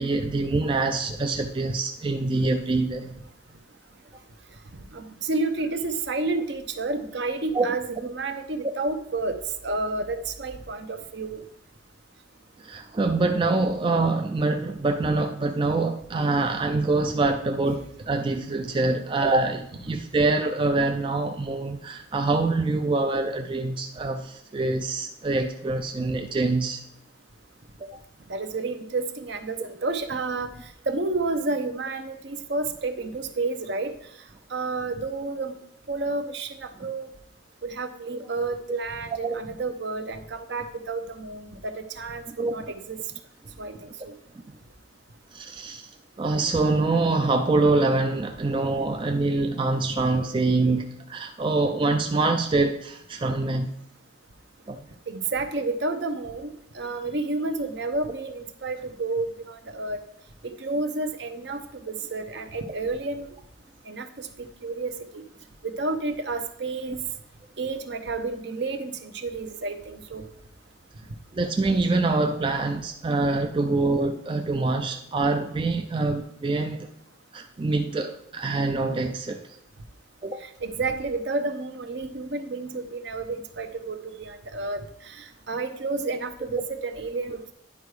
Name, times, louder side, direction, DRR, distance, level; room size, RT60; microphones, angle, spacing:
voice 1, 0.0-3.2 7.5-7.7 12.6-26.8 27.8-27.9 39.2-39.4 42.3-42.6 45.3-45.9 46.2-53.7 54.7-54.8 71.3-76.9 77.3-79.6 80.2-80.4, right 3 dB, 25° right, 5 dB, 0.3 m, -25 dB
voice 2, 4.7-9.4 9.6-11.4 28.3-30.5 30.9-33.9 34.5-35.6 35.9-37.1 37.6-43.0 43.6-44.1 55.1-60.0 60.4-61.6 61.9-63.3 63.9-64.3 64.6-65.2 65.6-67.0 67.6-70.2 80.4-87.5, right 3 dB, 60° right, 8 dB, 0.7 m, -30 dB
9.8 x 4.6 x 4.8 m, 0.74 s
head